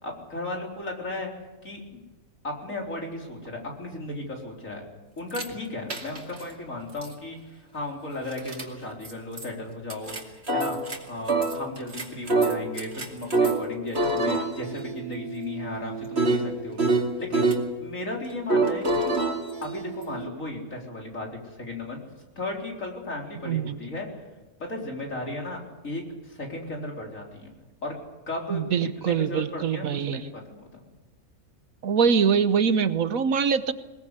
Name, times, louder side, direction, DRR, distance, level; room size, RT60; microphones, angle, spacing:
voice 1, 0.0-1.3 1.6-1.8 2.4-4.8 5.2-10.8 11.0-16.8 17.2-17.5 17.8-19.1 19.6-22.1 22.4-24.1 24.6-27.5 27.8-27.9 28.3-30.8, left 2 dB, 60° left, 0 dB, 4.6 m, -35 dB
sound 1, 5.3-5.5 5.9-6.4 7.0-7.1 8.3-8.6 9.0-9.1 9.4-9.5 9.9-11.0 11.3-13.6 13.9-17.6 18.5-20.3, right 3 dB, 45° right, 2.8 m, -26 dB
voice 2, 23.4-23.8 28.5-30.3 31.8-33.7, right 6 dB, 70° right, 12 dB, 1.4 m, -23 dB
21.5 x 21.0 x 8.2 m, 1.1 s
omnidirectional pair, 1.5 m